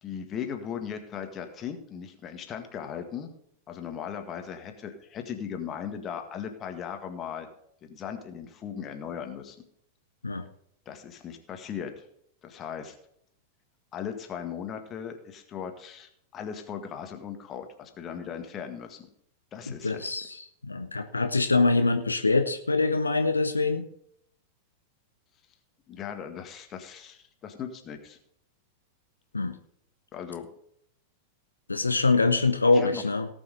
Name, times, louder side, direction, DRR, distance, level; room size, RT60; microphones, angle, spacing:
voice 1, 0.0-3.3 3.7-7.5 7.8-9.6 10.9-12.1 12.4-13.0 13.9-19.1 19.5-20.1 25.9-28.2 30.1-30.5 32.7-33.0, left 8 dB, 30° left, 6 dB, 1.8 m, -38 dB
voice 2, 19.8-20.4 20.6-23.9 29.3-29.6 31.7-33.3, left 3 dB, 80° left, 8 dB, 0.8 m, -24 dB
18.0 x 6.2 x 5.1 m, 0.70 s
figure-of-eight pair, 90°, 0 cm